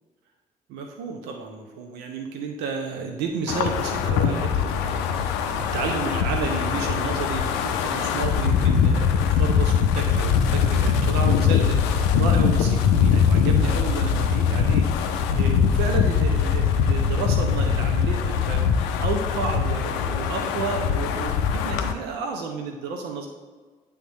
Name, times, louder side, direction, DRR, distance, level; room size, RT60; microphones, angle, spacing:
voice 1, 0.7-23.3, right 5 dB, 65° right, 3 dB, 0.7 m, -32 dB
Wind, 3.5-21.9, left 7 dB, 70° left, 0.5 m, -22 dB
9.2 x 3.6 x 4.2 m, 1.4 s
figure-of-eight pair, 45°, 19 cm